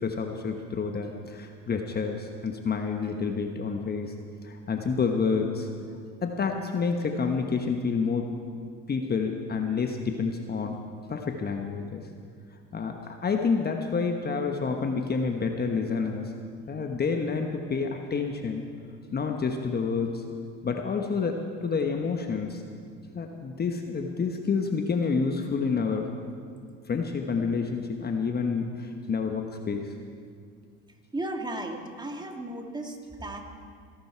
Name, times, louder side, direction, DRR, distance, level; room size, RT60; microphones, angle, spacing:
voice 1, 0.0-4.1 4.4-5.7 6.2-8.3 8.9-10.8 11.1-12.0 12.7-16.3 16.7-18.6 19.1-20.2 20.6-22.6 23.1-26.1 26.9-29.9, left 5 dB, 30° left, 4 dB, 1.3 m, -28 dB
voice 2, 31.1-33.4, right 1 dB, 15° right, 3 dB, 2.2 m, -35 dB
22.5 x 12.0 x 4.6 m, 2.2 s
supercardioid pair, 85°, 30 cm